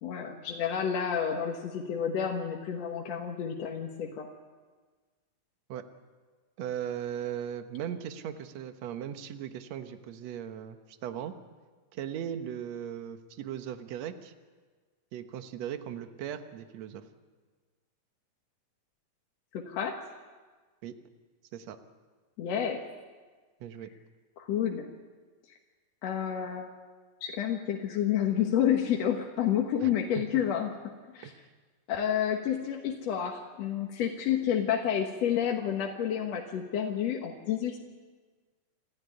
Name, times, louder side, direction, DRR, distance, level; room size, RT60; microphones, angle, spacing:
voice 1, 0.0-4.3 19.5-20.0 22.4-22.8 24.4-24.9 26.0-26.7 27.2-31.3 31.9-37.8, left 9 dB, 65° left, 1 dB, 2.4 m, -30 dB
voice 2, 6.6-11.3 11.9-14.3 15.1-17.0 20.8-20.9 21.5-21.8 23.6-23.9 29.8-29.9 30.3-30.4 31.2-31.5, right 9 dB, 65° right, 8 dB, 2.3 m, -38 dB
28.5 x 13.5 x 9.7 m, 1.4 s
omnidirectional pair, 3.5 m